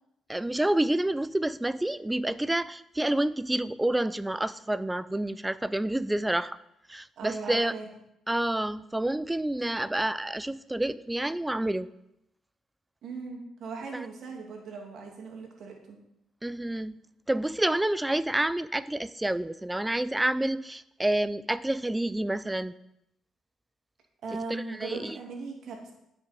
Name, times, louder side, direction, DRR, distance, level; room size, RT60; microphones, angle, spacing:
voice 1, 0.3-6.6 6.9-7.7 8.3-11.9 13.9-14.1 16.4-17.0 17.3-22.7 24.5-25.1, right 1 dB, 10° right, 16 dB, 0.5 m, -28 dB
voice 2, 7.2-7.9 13.0-16.0 24.2-25.9, right 4 dB, 70° right, 1 dB, 2.5 m, -39 dB
12.0 x 7.0 x 5.2 m, 0.81 s
cardioid pair, 90°, 0 cm